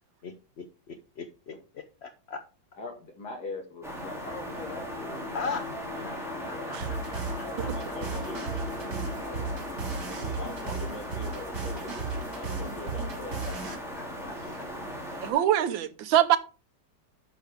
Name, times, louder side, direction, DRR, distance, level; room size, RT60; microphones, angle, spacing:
voice 1, 0.2-2.4 5.3-5.7 6.0-6.8 7.1-7.7 13.4-14.7, left 5 dB, 75° left, 0.6 m, -40 dB
voice 2, 2.8-5.3 7.6-8.6 10.2-13.6, left 2 dB, 60° left, 2.5 m, -42 dB
sound 1, 3.8-15.3, equal, ahead, 2.5 m, -38 dB
sound 2, 4.2-9.7, left 4 dB, 25° right, 4.8 m, -43 dB
sound 3, 6.8-13.7, right 4 dB, 65° right, 2.4 m, -35 dB
voice 3, 15.2-16.4, right 11 dB, 90° right, 1.6 m, -23 dB
9.6 x 6.4 x 3.5 m
omnidirectional pair, 2.0 m